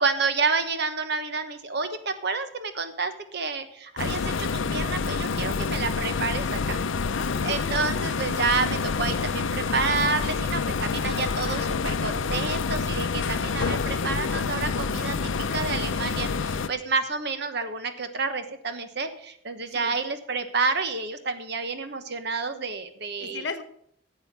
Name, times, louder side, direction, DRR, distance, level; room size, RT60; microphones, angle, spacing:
voice 1, 0.0-6.8 7.4-23.4, right 4 dB, 55° right, 9 dB, 1.1 m, -29 dB
sound 1, 4.0-16.7, left 5 dB, 75° left, 0.6 m, -27 dB
voice 2, 7.1-8.2 16.6-16.7 19.7-20.0 23.2-23.6, left 4 dB, 60° left, 9 dB, 1.0 m, -37 dB
11.5 x 7.9 x 5.4 m, 0.69 s
head